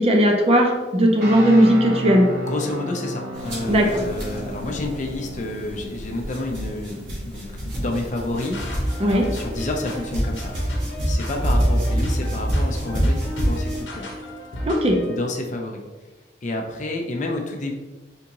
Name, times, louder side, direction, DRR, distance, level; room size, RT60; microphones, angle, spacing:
voice 1, 0.0-2.3 3.7-4.0 9.0-9.2 14.7-15.0, equal, 35° right, 1 dB, 0.6 m, -17 dB
sound 1, 1.2-9.5, equal, 55° right, 1.0 m, -35 dB
voice 2, 2.4-8.6 9.0-14.1 15.1-15.8 16.4-17.7, left 2 dB, 40° left, 2 dB, 0.5 m, -30 dB
sound 2, 3.3-13.8, equal, 85° right, 1.4 m, -28 dB
sound 3, 8.4-15.2, equal, 75° left, 0.8 m, -30 dB
3.7 x 3.6 x 2.9 m, 1.2 s
head